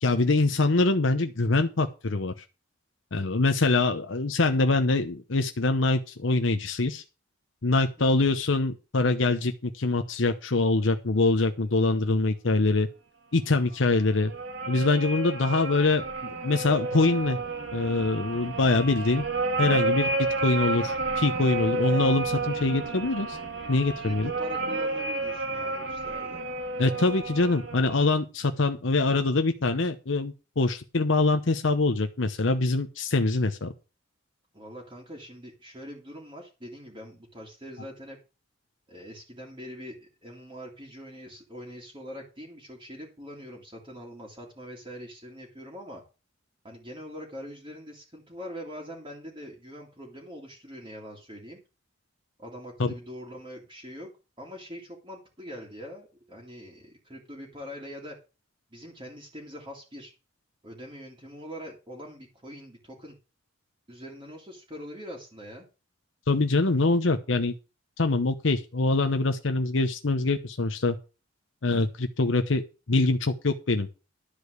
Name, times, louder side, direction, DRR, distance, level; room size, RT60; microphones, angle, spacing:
voice 1, 0.0-2.3 3.1-7.0 7.6-12.9 13.3-14.3 14.7-17.4 17.7-19.2 19.6-20.1 20.4-23.4 23.7-24.3 26.8-33.7 52.8-52.9 66.3-67.5 68.0-71.0 71.6-72.6 72.9-73.9, left 3 dB, 80° left, 7 dB, 0.9 m, -24 dB
sound 1, 13.7-28.1, right 3 dB, 70° right, 2.4 m, -31 dB
voice 2, 24.0-26.4 34.5-38.2 38.9-46.0 46.6-51.6 52.4-54.1 54.4-58.2 58.7-60.1 60.6-63.1 63.9-65.7, equal, 25° right, -3 dB, 2.5 m, -43 dB
11.5 x 5.0 x 8.1 m, 0.31 s
head